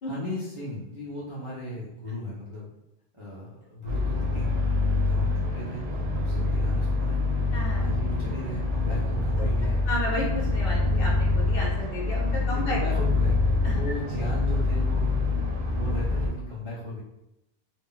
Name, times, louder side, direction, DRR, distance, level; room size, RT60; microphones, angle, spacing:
voice 1, 0.0-2.7 3.1-4.6 4.9-7.2 7.8-9.8 12.4-13.4 13.7-15.2 15.7-17.0, equal, 40° right, -9 dB, 0.4 m, -36 dB
sound 1, 3.9-16.3, left 2 dB, 70° right, 0.8 m, -25 dB
voice 2, 7.5-7.9 9.4-9.5 9.9-12.8 13.6-13.8, equal, 60° left, -4 dB, 0.9 m, -32 dB
2.1 x 2.0 x 3.8 m, 0.89 s
omnidirectional pair, 1.1 m